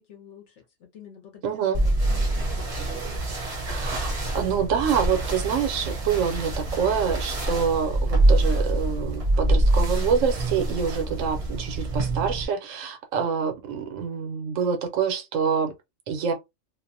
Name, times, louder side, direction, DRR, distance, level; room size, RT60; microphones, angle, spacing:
voice 1, 0.0-2.8, left 8 dB, 70° left, 0.9 m, -48 dB
voice 2, 1.4-1.8 3.7-15.7 16.1-16.3, right 7 dB, 85° right, 1.1 m, -26 dB
sound 1, 1.7-12.4, right 1 dB, 35° right, 0.7 m, -25 dB
2.5 x 2.1 x 2.5 m
omnidirectional pair, 1.3 m